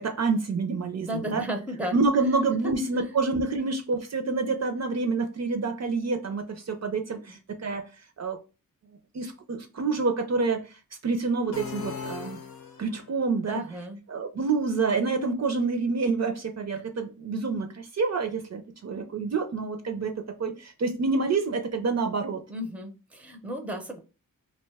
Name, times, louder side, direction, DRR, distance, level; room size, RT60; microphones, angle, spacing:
voice 1, 0.0-1.4 1.9-7.8 8.2-8.4 9.1-12.4 12.8-13.6 14.1-22.4, right 4 dB, 50° right, 0.5 m, -27 dB
voice 2, 1.0-2.0 2.6-2.7 3.0-3.1 7.3-7.4 13.5-14.0 22.5-24.0, equal, 5° right, 0.6 m, -34 dB
sound 1, 11.5-13.1, left 7 dB, 80° left, 0.6 m, -38 dB
2.6 x 2.2 x 3.3 m
wide cardioid pair, 85°, 35 cm